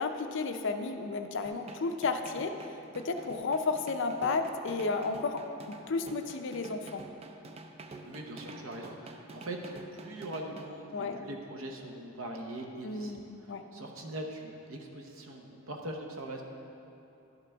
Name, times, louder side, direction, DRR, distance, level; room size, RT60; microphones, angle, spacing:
voice 1, 0.0-2.6 3.0-5.4 5.9-7.0 10.9-11.2 12.8-13.2 13.5-13.6, left 4 dB, 55° left, 7 dB, 0.4 m, -32 dB
sound 1, 1.4-10.7, right 2 dB, 25° right, 0.3 m, -48 dB
voice 2, 8.0-9.6 9.9-16.4, right 1 dB, 60° right, 2 dB, 0.8 m, -42 dB
11.5 x 5.9 x 3.4 m, 2.9 s
head